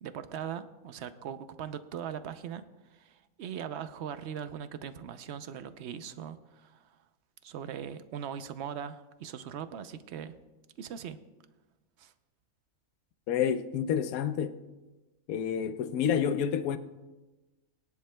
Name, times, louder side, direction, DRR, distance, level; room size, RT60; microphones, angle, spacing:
voice 1, 0.0-2.6 2.9-7.0 7.4-10.3 10.8-11.2 12.0-12.1, right 8 dB, 60° right, 0.8 m, -40 dB
voice 2, 13.3-14.6 15.3-16.8, left 8 dB, 80° left, 1.1 m, -29 dB
22.0 x 10.5 x 2.2 m
omnidirectional pair, 1.5 m